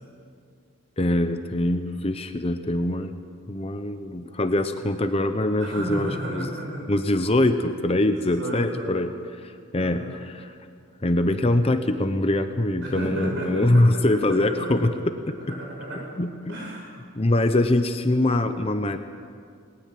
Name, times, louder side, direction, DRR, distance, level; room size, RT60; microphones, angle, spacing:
voice 1, 1.0-3.2 3.5-6.4 6.9-9.1 9.4-10.0 10.3-10.5 11.0-14.9 16.2-16.5 17.2-19.0, left 1 dB, 30° left, 9 dB, 0.8 m, -23 dB
voice 2, 5.6-6.9 8.0-9.0 9.8-10.1 12.8-14.9 15.4-16.1 16.5-16.9, right 1 dB, 55° right, -2 dB, 7.5 m, -33 dB
19.5 x 19.5 x 7.7 m, 2.2 s
head